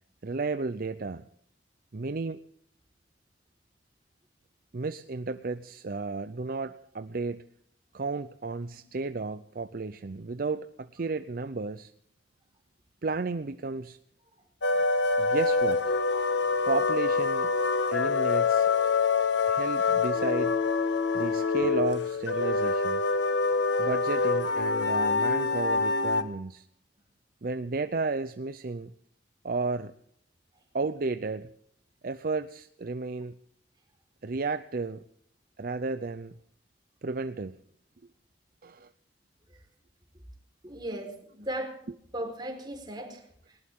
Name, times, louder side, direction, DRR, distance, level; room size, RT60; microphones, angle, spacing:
voice 1, 0.2-1.2 1.9-2.4 4.7-7.4 7.9-11.9 13.0-14.0 15.2-16.0 16.6-17.5 17.9-18.7 19.4-20.5 21.1-23.0 23.8-26.7 27.4-28.9 29.4-29.9 30.7-31.5 32.0-33.3 34.2-35.0 35.6-36.3 37.0-37.6 38.6-38.9, right 3 dB, 55° right, 12 dB, 0.6 m, -33 dB
sound 1, 14.6-26.2, left 4 dB, 85° left, 1.6 m, -26 dB
voice 2, 40.6-41.7 42.1-43.2, right 1 dB, 25° right, 3 dB, 4.4 m, -37 dB
20.0 x 19.5 x 3.7 m, 0.69 s
head